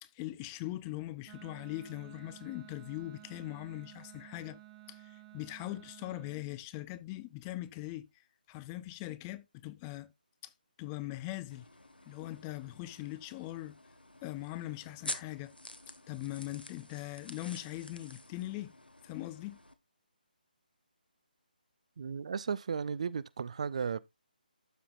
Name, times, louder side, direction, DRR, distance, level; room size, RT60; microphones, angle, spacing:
voice 1, 0.0-4.6 4.9-10.1 10.4-10.5 10.8-11.7 12.1-13.8 14.2-15.5 16.1-18.7 19.0-19.6, left 17 dB, 15° left, 0.5 m, -41 dB
Wind instrument woodwind instrument, 1.2-6.4, right 15 dB, 15° right, 1.0 m, -53 dB
sound 1, 11.5-19.7, left 1 dB, 85° left, 1.5 m, -48 dB
voice 2, 22.0-24.0, right 6 dB, 45° right, 0.5 m, -35 dB
12.5 x 5.6 x 2.4 m
figure-of-eight pair, 145°, 5 cm